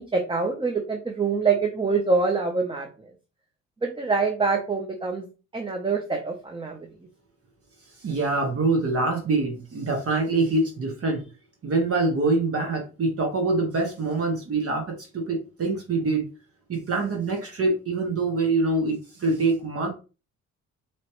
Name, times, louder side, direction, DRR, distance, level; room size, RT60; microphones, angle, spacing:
voice 1, 0.0-3.1 3.8-5.3 5.5-6.9, right 4 dB, 15° right, 3 dB, 0.8 m, -25 dB
voice 2, 8.0-11.2 11.6-16.3 16.7-19.9, right 3 dB, 50° right, 2 dB, 1.3 m, -25 dB
4.4 x 3.1 x 3.0 m, 0.32 s
cardioid pair, 90°, 30 cm